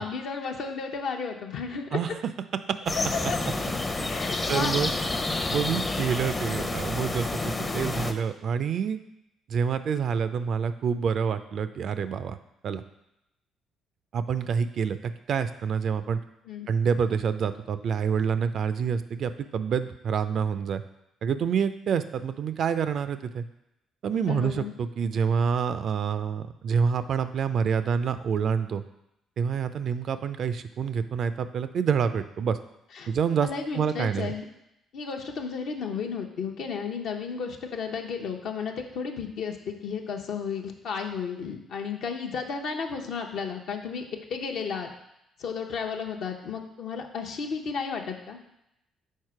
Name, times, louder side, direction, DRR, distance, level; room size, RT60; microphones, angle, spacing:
voice 1, 0.0-2.2 3.3-3.4 4.1-4.8 16.5-16.7 24.3-24.7 32.9-33.1 33.4-34.4 34.9-44.0 44.3-44.9 45.4-48.4, left 5 dB, 65° left, 3 dB, 0.7 m, -33 dB
sound 1, 2.9-8.1, left 2 dB, 30° left, 0.6 m, -29 dB
voice 2, 4.5-4.9 5.5-9.0 9.5-12.4 12.6-12.8 14.1-16.2 16.7-20.8 21.2-23.4 24.0-28.8 29.4-32.6 33.1-34.3, right 6 dB, 60° right, 11 dB, 0.4 m, -27 dB
4.6 x 4.3 x 4.7 m, 0.84 s
hypercardioid pair, 50°, 0 cm